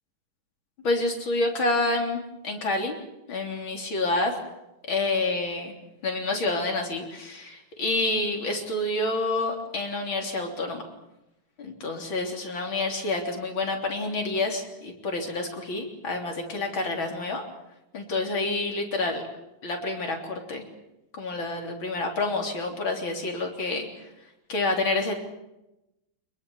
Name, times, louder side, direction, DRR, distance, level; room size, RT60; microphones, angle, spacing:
voice 1, 0.8-2.9 3.3-4.3 4.9-5.7 6.0-10.8 11.6-17.4 17.9-19.2 19.6-20.6 21.1-23.9 24.5-25.2, left 2 dB, 70° left, 2 dB, 4.2 m, -28 dB
25.0 x 22.5 x 7.2 m, 0.92 s
omnidirectional pair, 2.2 m